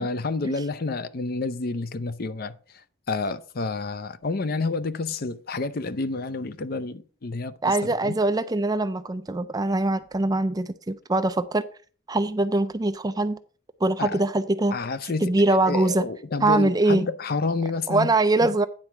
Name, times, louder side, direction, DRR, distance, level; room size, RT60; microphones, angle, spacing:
voice 1, 0.0-7.8 8.0-8.1 14.0-14.2 14.7-18.1 18.4-18.5, left 3 dB, 50° left, 0.6 m, -29 dB
voice 2, 7.6-11.6 12.1-13.4 13.8-14.7 15.2-16.1 16.4-17.1 17.9-18.7, right 2 dB, 20° right, 0.4 m, -23 dB
9.7 x 4.4 x 5.9 m
head